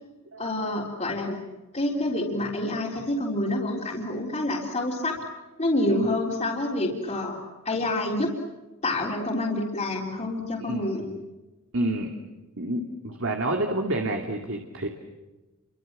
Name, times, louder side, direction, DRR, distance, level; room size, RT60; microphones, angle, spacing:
voice 1, 0.4-1.4 1.7-5.2 5.6-8.3 8.8-11.0, left 1 dB, 30° left, -3 dB, 3.7 m, -27 dB
voice 2, 10.6-11.1 11.7-12.1 12.6-14.9, right 1 dB, 60° right, 3 dB, 2.7 m, -29 dB
30.0 x 25.0 x 7.5 m, 1.1 s
head